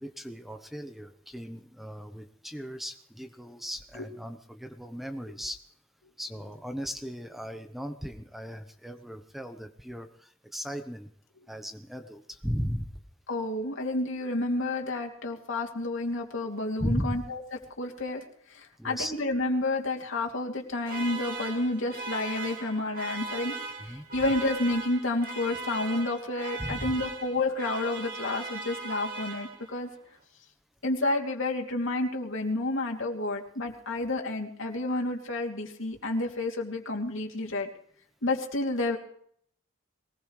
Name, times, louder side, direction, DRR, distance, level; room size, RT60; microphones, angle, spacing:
voice 1, 0.0-5.6 6.2-10.1 10.5-11.1 11.5-12.8 16.8-17.1 18.8-19.1 23.9-24.0 26.6-26.9, equal, ahead, 6 dB, 0.9 m, -36 dB
voice 2, 13.3-17.4 17.8-23.5 23.8-29.9 30.8-37.7 38.2-39.0, left 2 dB, 65° left, 1 dB, 2.8 m, -30 dB
sound 1, 20.9-29.9, right 3 dB, 40° right, 2.8 m, -39 dB
22.5 x 19.5 x 3.2 m, 0.63 s
head